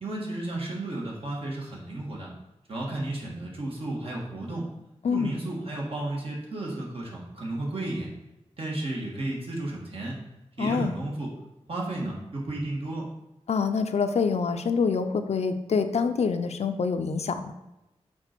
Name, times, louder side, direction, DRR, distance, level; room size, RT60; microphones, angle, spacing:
voice 1, 0.0-2.3 2.7-4.7 5.1-8.1 8.6-10.1 10.6-11.3 11.7-13.1, right 2 dB, 60° right, -3 dB, 1.6 m, -33 dB
voice 2, 10.6-10.9 13.5-17.5, left 5 dB, 75° left, 8 dB, 0.5 m, -26 dB
5.9 x 3.8 x 4.4 m, 0.95 s
wide cardioid pair, 120°, 11 cm